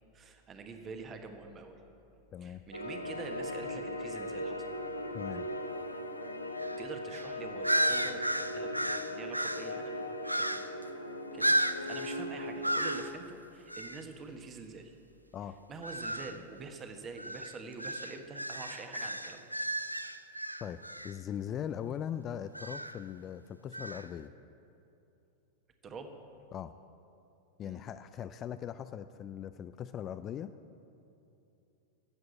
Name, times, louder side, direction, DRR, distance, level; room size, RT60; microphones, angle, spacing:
voice 1, 0.1-1.8 2.4-4.7 6.8-10.9 11.3-11.6 11.9-14.9 15.7-19.4 25.8-26.1 27.6-27.8, right 4 dB, 25° right, 6 dB, 1.3 m, -46 dB
sound 1, 2.7-13.0, left 1 dB, 85° left, 0.8 m, -39 dB
sound 2, 6.6-6.8 7.1-7.3 7.6-9.7 10.2-10.8 11.4-12.2 12.6-13.1 13.7-14.0 15.8-16.4 17.2-21.1 22.5-23.0 23.7-24.1, right 1 dB, 90° right, 0.4 m, -33 dB
voice 2, 21.0-24.3 26.5-26.7 27.6-30.5, left 9 dB, 30° left, 11 dB, 0.4 m, -40 dB
14.0 x 7.9 x 8.4 m, 2.8 s
figure-of-eight pair, 90°, 0 cm